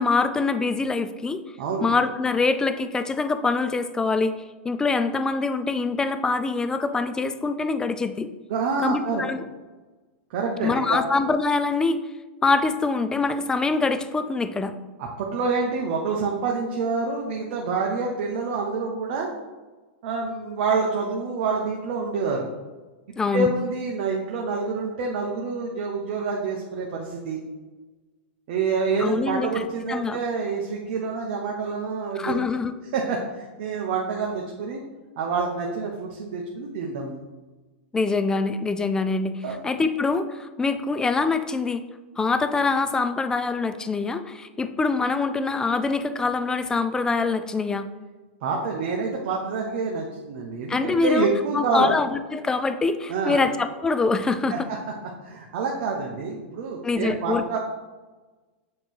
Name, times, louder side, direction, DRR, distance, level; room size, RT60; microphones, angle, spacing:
voice 1, 0.0-1.4 1.8-4.3 4.6-8.3 8.8-9.4 10.6-12.0 12.4-14.7 23.2-23.5 29.0-30.2 32.2-32.7 37.9-39.4 39.6-41.8 42.2-47.9 50.7-51.3 51.5-54.5 56.8-57.6, left 4 dB, 10° left, 10 dB, 0.4 m, -24 dB
voice 2, 8.5-9.2 10.3-11.0 15.0-19.3 20.0-22.5 23.3-27.4 28.5-32.4 32.9-34.8 35.2-37.2 39.4-39.6 48.4-51.9 53.1-53.4 54.5-54.6 55.2-57.6, right 4 dB, 55° right, -1 dB, 0.9 m, -27 dB
7.5 x 3.1 x 4.5 m, 1.2 s
hypercardioid pair, 135°, 7 cm